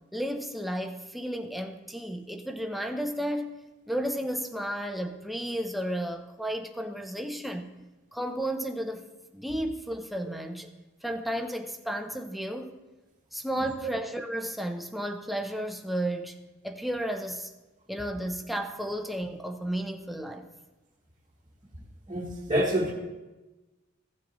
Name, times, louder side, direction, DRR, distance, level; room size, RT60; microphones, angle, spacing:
voice 1, 0.1-3.5 3.9-7.7 8.1-9.1 9.3-10.7 11.0-12.7 13.3-17.5 17.9-20.5, right 1 dB, ahead, 5 dB, 0.6 m, -33 dB
voice 2, 22.1-22.9, equal, 25° right, -5 dB, 1.2 m, -27 dB
15.5 x 7.4 x 3.0 m, 1.1 s
head